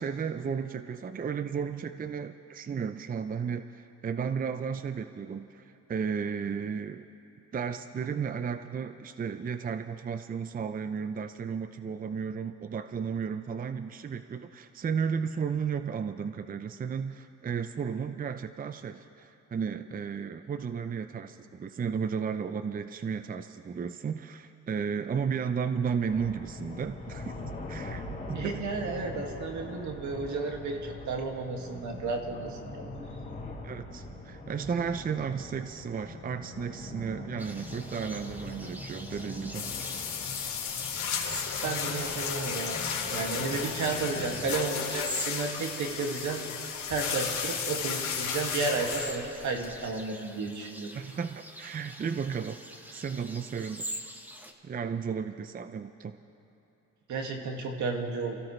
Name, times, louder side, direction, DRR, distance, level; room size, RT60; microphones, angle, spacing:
voice 1, 0.0-7.1 7.5-27.3 27.7-28.0 28.3-28.6 33.6-39.6 51.0-52.6 52.9-53.9 54.6-56.2, right 6 dB, 30° right, 10 dB, 0.6 m, -34 dB
sound 1, 26.1-44.5, left 2 dB, 25° left, 3.3 m, -42 dB
voice 2, 28.3-32.8 41.6-42.8 43.1-46.4 46.9-50.9 57.1-58.4, right 4 dB, 70° right, 2 dB, 2.1 m, -33 dB
sound 2, 37.4-54.5, equal, 5° right, 1.4 m, -44 dB
sound 3, 39.5-49.9, left 7 dB, 70° left, 2.8 m, -34 dB
28.5 x 15.5 x 3.3 m, 2.9 s
cardioid pair, 90°, 30 cm